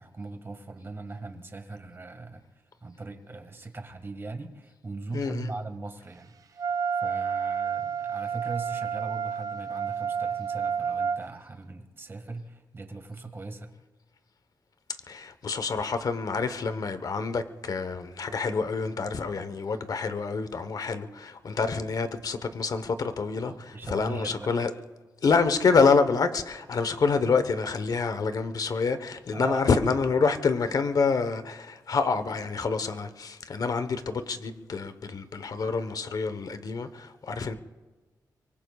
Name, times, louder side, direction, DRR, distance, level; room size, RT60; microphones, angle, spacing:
voice 1, 0.0-2.5 2.8-13.7 23.4-24.5 29.3-29.7, right 3 dB, 30° right, 1.9 m, -39 dB
voice 2, 5.1-5.5 15.1-24.7 25.2-37.6, left 4 dB, 60° left, 1.1 m, -27 dB
Wind instrument woodwind instrument, 6.6-11.2, right 7 dB, 55° right, 0.5 m, -30 dB
24.0 x 23.5 x 2.4 m
cardioid pair, 90°, 7 cm